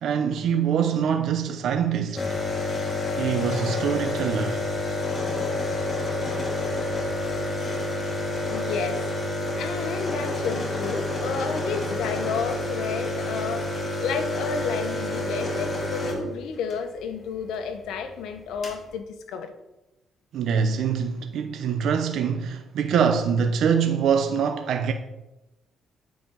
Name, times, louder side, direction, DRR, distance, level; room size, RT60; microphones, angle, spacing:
voice 1, 0.0-2.4 3.2-4.6 20.3-24.9, right 7 dB, 75° right, 0.8 m, -24 dB
sound 1, 2.2-16.8 18.1-18.2 18.4-18.8, left 2 dB, 30° left, 3.4 m, -28 dB
voice 2, 8.5-9.1 9.5-19.5, left 6 dB, 85° left, 1.1 m, -31 dB
9.3 x 5.1 x 7.4 m
cardioid pair, 90°, 0 cm